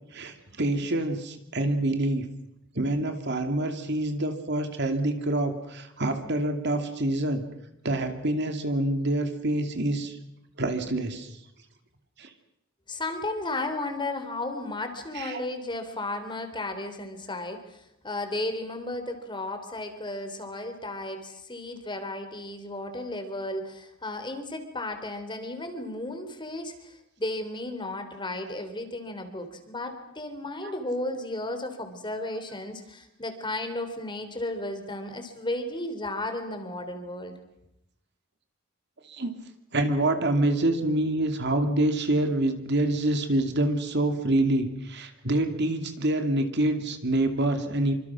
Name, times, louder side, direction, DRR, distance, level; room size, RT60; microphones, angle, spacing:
voice 1, 0.1-2.3 2.7-7.4 7.8-10.2 10.6-11.3 12.2-12.3 15.1-15.4 30.6-30.7 39.1-39.3 39.7-47.9, right 1 dB, 50° right, 6 dB, 2.7 m, -26 dB
voice 2, 12.9-37.3, left 2 dB, 20° left, 7 dB, 3.5 m, -34 dB
27.0 x 25.5 x 6.2 m, 0.84 s
head